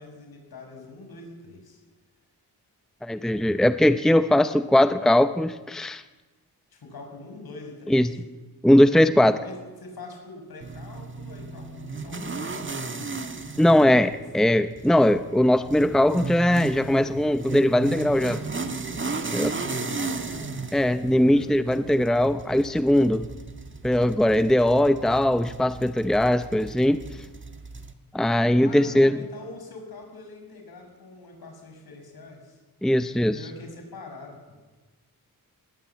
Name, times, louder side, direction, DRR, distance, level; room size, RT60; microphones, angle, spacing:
voice 1, 0.0-1.8 6.7-8.2 9.3-13.2 14.0-14.3 19.3-21.8 28.6-32.6 33.3-34.6, left 3 dB, 70° left, 3 dB, 7.0 m, -44 dB
voice 2, 3.0-6.0 7.9-8.1 8.6-9.3 13.6-18.4 19.3-19.5 20.7-23.3 23.8-27.0 28.1-29.2 32.8-33.3, left 1 dB, ahead, 11 dB, 0.7 m, -20 dB
sound 1, 10.6-27.9, right 3 dB, 30° right, 1.7 m, -35 dB
19.5 x 18.5 x 8.6 m, 1.2 s
cardioid pair, 85°, 39 cm